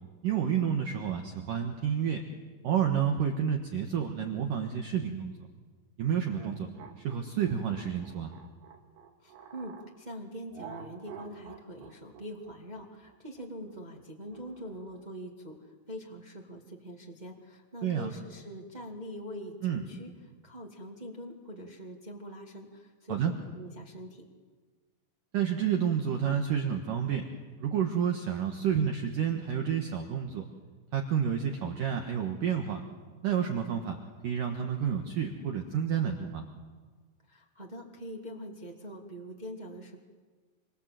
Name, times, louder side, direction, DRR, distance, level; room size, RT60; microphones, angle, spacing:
voice 1, 0.2-2.2 2.6-5.3 6.0-6.7 7.0-8.3 17.8-18.1 19.6-19.9 23.1-23.3 25.3-27.3 27.6-30.4 30.9-32.8 33.2-34.0 34.2-36.4, right 8 dB, 65° right, 4 dB, 2.4 m, -30 dB
sound 1, 6.3-9.9 10.5-15.0, right 7 dB, 80° right, 4.9 m, -49 dB
voice 2, 9.2-20.1 20.4-24.2 37.2-40.0, equal, 45° right, 0 dB, 0.5 m, -44 dB
27.5 x 26.0 x 7.6 m, 1.4 s
omnidirectional pair, 5.3 m